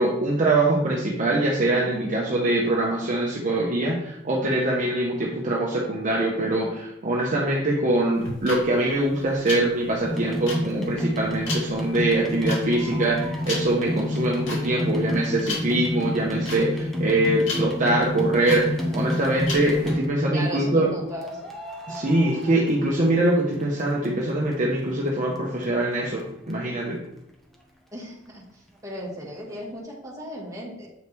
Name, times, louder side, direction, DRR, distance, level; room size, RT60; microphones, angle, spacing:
voice 1, 0.0-20.9 21.9-27.0, right 1 dB, 40° right, -3 dB, 1.0 m, -23 dB
voice 2, 1.9-2.2 18.9-19.1 20.3-21.5 27.9-30.9, equal, 15° right, -4 dB, 1.9 m, -36 dB
sound 1, 8.1-19.9, left 3 dB, 70° left, 2.5 m, -35 dB
sound 2, 10.1-20.4 21.2-23.3 23.6-24.5 25.1-25.2 25.4-25.5 25.6-25.7 26.2-26.3 26.5-26.6, left 1 dB, ahead, 1.0 m, -29 dB
8.0 x 4.9 x 3.5 m, 0.81 s
head